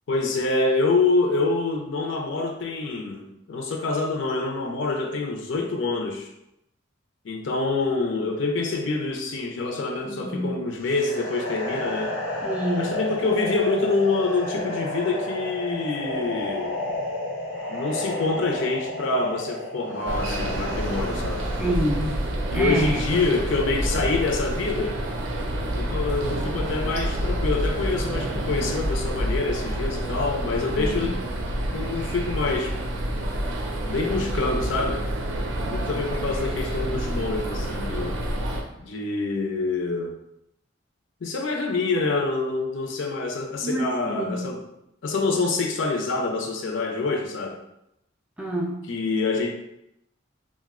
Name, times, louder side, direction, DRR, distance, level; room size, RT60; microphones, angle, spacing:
voice 1, 0.1-6.3 7.2-12.2 12.8-16.8 17.7-21.4 22.5-25.0 25.7-31.2 31.7-32.7 33.9-35.1 35.7-38.2 38.8-40.1 41.2-44.7 45.0-47.6 48.9-49.5, left 3 dB, 70° left, 2 dB, 0.5 m, -26 dB
voice 2, 10.1-10.6 12.4-12.9 21.6-22.2 22.5-23.0 30.8-31.2 43.6-44.5 48.4-48.8, right 1 dB, 5° right, -2 dB, 0.3 m, -27 dB
sound 1, 10.8-21.9, left 1 dB, 85° left, 1.0 m, -31 dB
sound 2, 20.1-38.6, right 1 dB, 75° right, 0.5 m, -28 dB
2.6 x 2.1 x 3.6 m, 0.83 s
head